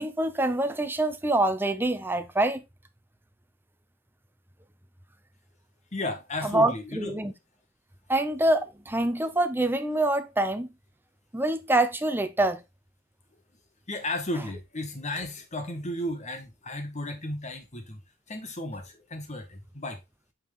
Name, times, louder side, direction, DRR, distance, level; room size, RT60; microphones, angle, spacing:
voice 1, 0.0-2.6 6.4-7.3 8.1-10.7 11.3-12.6, right 1 dB, 10° right, 0.8 m, -25 dB
voice 2, 5.9-7.2 13.9-18.0 18.3-20.0, left 1 dB, 35° left, 1.8 m, -34 dB
8.8 x 4.5 x 3.7 m
head